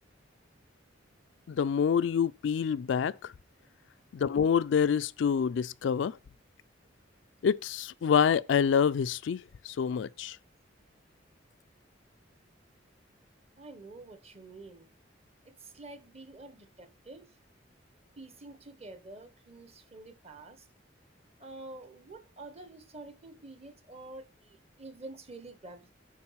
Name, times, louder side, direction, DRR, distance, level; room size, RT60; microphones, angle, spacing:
voice 1, 1.5-3.3 4.1-6.2 7.4-10.4, left 7 dB, 70° left, 0.3 m, -27 dB
voice 2, 13.6-14.9 15.4-17.3 18.2-20.7 21.4-25.9, right 2 dB, 35° right, 1.1 m, -48 dB
8.9 x 3.8 x 5.6 m
head